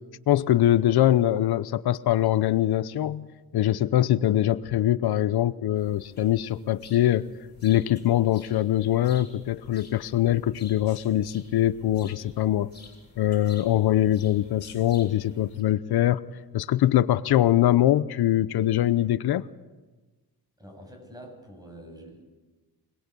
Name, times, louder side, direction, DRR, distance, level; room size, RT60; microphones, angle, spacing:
voice 1, 0.3-3.3 3.5-7.3 7.6-12.7 13.2-16.2 16.5-19.4, left 12 dB, 90° left, 15 dB, 0.8 m, -23 dB
sound 1, 5.7-15.6, left 3 dB, 30° left, 7.7 m, -51 dB
voice 2, 20.6-22.2, equal, 10° right, 3 dB, 7.8 m, -46 dB
26.0 x 20.5 x 8.3 m, 1.2 s
wide cardioid pair, 120°, 37 cm